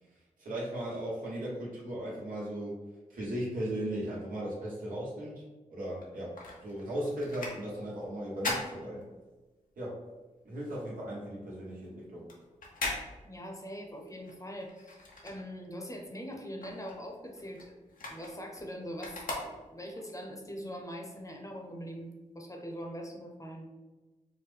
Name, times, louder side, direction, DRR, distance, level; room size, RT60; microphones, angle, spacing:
voice 1, 0.1-2.8 3.1-6.3 6.6-9.0 9.8-10.0 10.4-12.3, right 1 dB, 85° right, -5 dB, 1.3 m, -37 dB
sound 1, 5.9-9.6 10.0-15.9 16.3-20.0 20.6-20.7, left 2 dB, 80° left, 0.9 m, -41 dB
voice 2, 13.2-17.8 18.1-23.7, equal, 25° left, 1 dB, 0.8 m, -42 dB
4.8 x 2.1 x 3.4 m, 1.2 s
cardioid pair, 50°, 14 cm